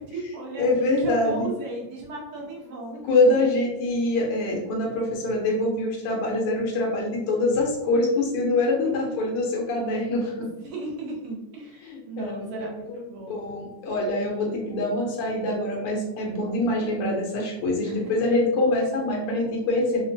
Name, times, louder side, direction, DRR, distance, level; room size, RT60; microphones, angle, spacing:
voice 1, 0.0-0.7 1.0-3.0 10.6-13.4 17.8-18.1, right 2 dB, 90° right, -3 dB, 1.9 m, -35 dB
voice 2, 0.6-1.5 3.1-10.5 11.8-12.7 13.3-20.0, left 2 dB, 80° left, -1 dB, 1.8 m, -24 dB
4.6 x 2.2 x 2.7 m, 0.91 s
omnidirectional pair, 2.4 m